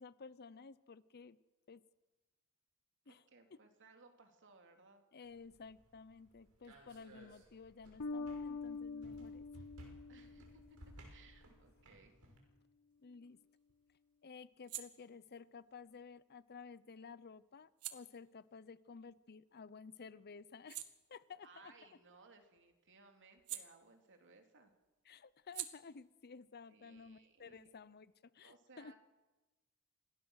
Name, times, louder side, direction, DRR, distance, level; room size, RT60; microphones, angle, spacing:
voice 1, 0.0-1.4 1.7-1.8 3.1-3.2 5.1-9.5 13.0-13.4 14.2-21.7 25.1-28.9, left 5 dB, 45° left, 17 dB, 0.7 m, -54 dB
voice 2, 3.0-5.0 10.1-10.8 11.1-12.1 21.4-24.7 26.7-27.7 28.4-29.0, right 4 dB, 60° right, 4 dB, 3.1 m, -63 dB
sound 1, 5.2-12.4, right 1 dB, 75° right, 6.3 m, -59 dB
Bass guitar, 8.0-11.0, left 3 dB, 85° left, 1.1 m, -45 dB
sound 2, 12.9-19.8 20.2-24.4 24.7-28.1, right 12 dB, 90° right, 1.7 m, -53 dB
27.0 x 19.5 x 6.4 m, 1.1 s
head